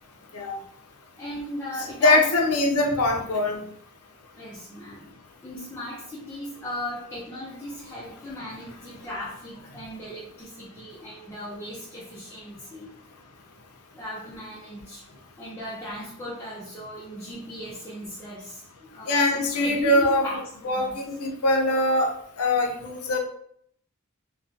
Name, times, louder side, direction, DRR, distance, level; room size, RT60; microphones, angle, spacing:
voice 1, 1.2-2.5 4.3-5.1 5.4-12.9 13.9-15.0 15.4-20.4 20.8-20.9, left 1 dB, 10° left, -10 dB, 0.5 m, -37 dB
voice 2, 2.0-3.6 19.1-20.3 20.6-22.1 22.4-23.2, left 2 dB, 85° left, 3 dB, 0.5 m, -22 dB
2.4 x 2.2 x 2.5 m, 0.67 s
head